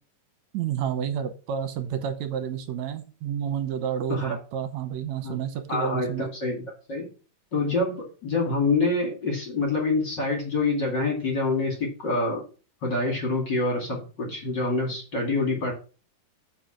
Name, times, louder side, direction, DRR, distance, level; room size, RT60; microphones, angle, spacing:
voice 1, 0.5-6.3, right 8 dB, 75° right, 9 dB, 2.3 m, -30 dB
voice 2, 5.7-6.6 6.9-7.1 7.5-12.4 12.8-15.7, left 3 dB, 40° left, 0 dB, 2.8 m, -26 dB
8.2 x 4.9 x 5.9 m, 0.35 s
omnidirectional pair, 3.4 m